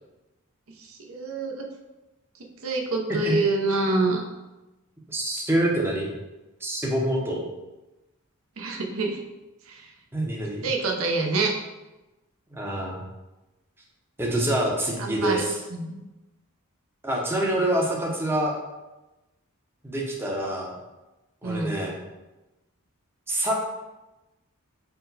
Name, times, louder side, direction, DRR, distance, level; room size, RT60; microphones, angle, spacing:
voice 1, 0.8-1.7 2.6-4.3 8.6-9.2 9.7-9.9 10.6-11.5 15.0-15.4 15.7-16.0 21.4-21.7, right 3 dB, 65° right, 2 dB, 0.6 m, -26 dB
voice 2, 5.1-6.1 6.6-7.4 10.1-10.7 12.5-13.0 14.2-15.6 17.0-18.6 19.8-20.7 21.4-22.0 23.3-23.5, right 1 dB, 10° right, -2 dB, 0.6 m, -26 dB
4.5 x 2.1 x 3.9 m, 1.0 s
head